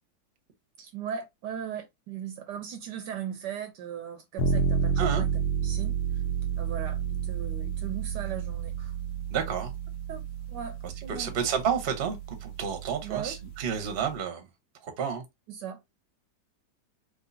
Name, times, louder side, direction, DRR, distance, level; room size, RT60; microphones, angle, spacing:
voice 1, 0.8-6.0 6.6-8.9 10.1-11.3 13.0-13.4 15.5-15.8, right 8 dB, 75° right, 1.1 m, -38 dB
sound 1, 4.4-14.1, right 6 dB, 60° left, 1.2 m, -31 dB
voice 2, 9.3-9.7 10.8-14.4 15.0-15.2, right 7 dB, 45° right, 0.8 m, -30 dB
3.6 x 3.3 x 2.6 m
omnidirectional pair, 2.1 m